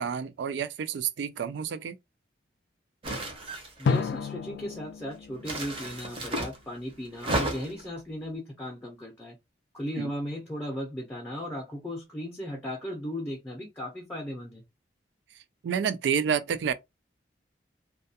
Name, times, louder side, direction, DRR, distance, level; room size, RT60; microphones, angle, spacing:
voice 1, 0.0-2.0 10.0-10.1 15.6-16.7, right 7 dB, 85° right, 0.3 m, -29 dB
sound 1, 3.0-4.0 5.4-6.6 7.1-7.9, right 1 dB, 30° right, 0.6 m, -32 dB
voice 2, 3.8-9.4 9.7-14.6, equal, 10° left, 0.6 m, -36 dB
Drum, 3.9-6.6, left 5 dB, 80° left, 0.3 m, -32 dB
2.3 x 2.2 x 2.7 m
head